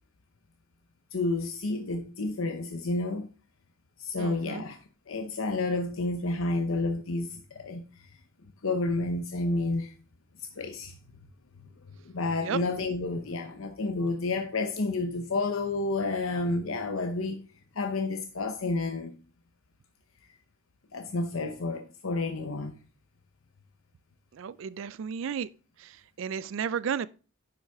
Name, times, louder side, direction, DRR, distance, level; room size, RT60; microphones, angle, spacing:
voice 1, 1.1-3.3 4.0-4.8 5.1-7.8 8.6-9.9 10.4-11.0 12.0-17.4 17.7-19.2 20.9-22.7, left 2 dB, 80° left, 0.8 m, -30 dB
voice 2, 4.2-4.6 12.4-12.6 24.3-25.5 25.8-27.1, right 7 dB, 70° right, 0.4 m, -33 dB
10.0 x 5.6 x 3.5 m
head